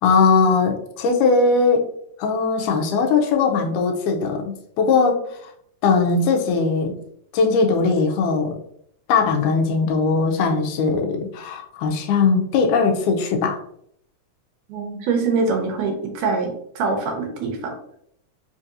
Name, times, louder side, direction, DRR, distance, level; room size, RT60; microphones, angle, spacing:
voice 1, 0.0-1.9 2.2-5.4 5.8-7.0 7.3-8.6 9.1-13.6, left 4 dB, 80° left, 3 dB, 2.1 m, -19 dB
voice 2, 14.7-17.7, right 4 dB, 80° right, 3 dB, 2.3 m, -24 dB
5.2 x 2.7 x 2.5 m, 0.70 s
omnidirectional pair, 3.7 m